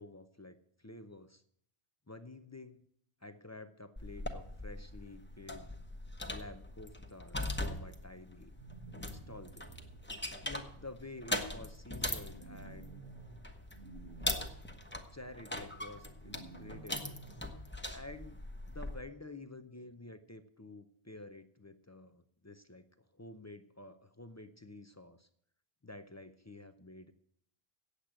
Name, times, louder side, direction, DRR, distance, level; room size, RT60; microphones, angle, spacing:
voice 1, 0.0-1.4 2.1-2.8 3.2-5.7 6.3-8.6 9.1-9.8 10.4-13.0 15.1-17.2 17.9-22.8 23.1-25.3 25.8-27.1, left 2 dB, 25° left, 9 dB, 0.3 m, -50 dB
sound 1, 4.0-19.0, left 1 dB, 10° left, 0.9 m, -41 dB
sound 2, 8.6-10.0 12.3-13.4 13.7-14.5 16.2-17.4, right 4 dB, 85° right, 1.3 m, -52 dB
8.3 x 8.2 x 8.8 m, 0.70 s
omnidirectional pair, 1.1 m